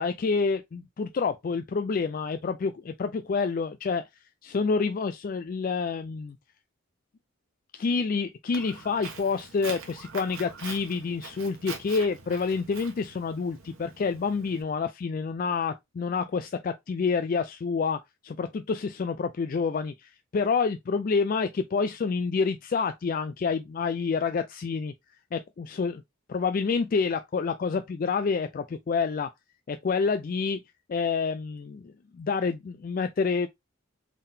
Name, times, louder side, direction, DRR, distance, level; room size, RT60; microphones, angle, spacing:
voice 1, 0.0-4.0 4.4-6.4 7.7-24.9 25.3-26.0 26.3-29.3 29.7-30.6 30.9-33.5, left 5 dB, 40° left, 0.3 m, -28 dB
Walk footsteps, 8.5-14.6, right 5 dB, 70° right, 1.2 m, -44 dB
3.7 x 3.6 x 2.7 m
head